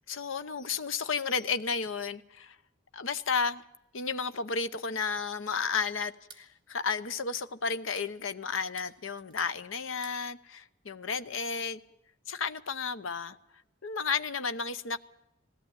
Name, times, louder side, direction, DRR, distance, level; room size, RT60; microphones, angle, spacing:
voice 1, 0.1-2.6 2.9-3.6 3.9-11.8 12.3-13.4 13.8-15.0, left 5 dB, 75° left, 0.9 m, -32 dB
sound 1, 6.1-6.5 7.7-8.1 8.6-9.6 9.8-10.2, right 6 dB, 25° right, 2.4 m, -53 dB
20.0 x 16.5 x 8.9 m
head